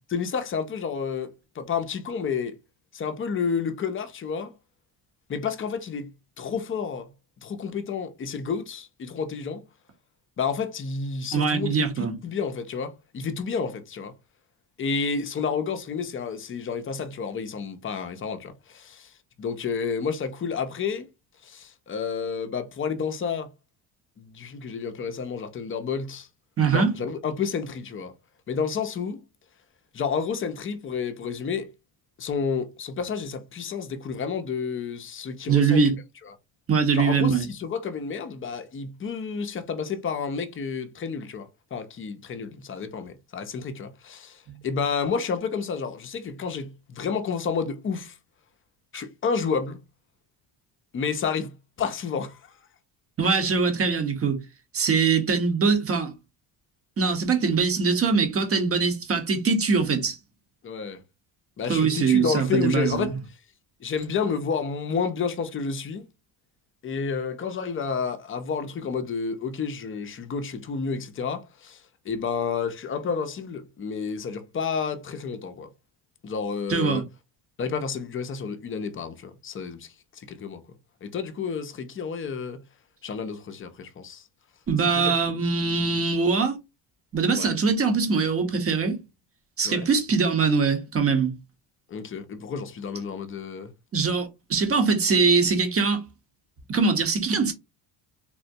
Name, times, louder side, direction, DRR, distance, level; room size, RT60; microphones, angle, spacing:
voice 1, 0.1-2.6 2.9-4.5 5.3-6.1 6.4-7.1 7.4-9.6 10.4-14.1 14.8-19.1 19.4-21.1 21.4-23.5 24.2-26.3 26.7-28.1 28.5-29.2 29.9-31.7 32.2-35.9 36.3-36.4 36.9-48.2 48.9-49.8 50.9-52.5 53.2-53.4 60.6-61.0 61.6-63.2 63.8-66.1 66.8-75.7 76.2-77.0 77.6-80.6 81.0-82.6 83.0-84.2 84.9-86.0 87.3-87.5 89.6-89.9 91.9-93.7, left 6 dB, 30° left, 0.5 m, -30 dB
voice 2, 11.3-12.2 26.6-26.9 35.5-35.9 36.7-37.5 48.9-49.0 53.2-54.4 54.7-56.1 57.0-60.2 61.7-63.2 76.7-77.0 84.7-86.6 87.1-89.0 89.6-91.4 93.9-96.0 96.7-97.5, right 5 dB, 30° right, 0.9 m, -22 dB
3.7 x 2.0 x 2.6 m
cardioid pair, 100°, 43 cm